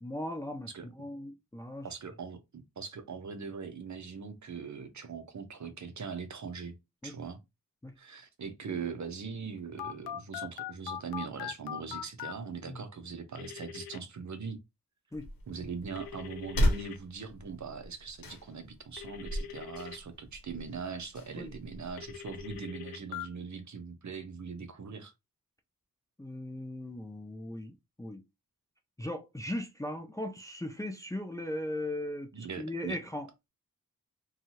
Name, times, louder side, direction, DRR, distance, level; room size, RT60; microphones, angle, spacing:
voice 1, 0.0-0.7 1.0-1.9 7.0-7.1 7.8-7.9 12.7-12.8 15.1-15.3 21.4-21.5 26.2-28.2 29.0-33.3, left 1 dB, 10° left, 0.5 m, -38 dB
voice 2, 1.8-6.8 7.0-7.4 8.0-14.6 15.5-25.1 32.3-33.0, right 5 dB, 50° right, 0.7 m, -41 dB
Telephone, 9.8-12.3 13.3-14.0 16.0-17.0 19.0-20.0 22.0-23.3, left 10 dB, 85° left, 0.5 m, -41 dB
sound 1, 15.1-22.6, equal, 65° left, 1.0 m, -36 dB
2.7 x 2.4 x 2.8 m
cardioid pair, 50°, 37 cm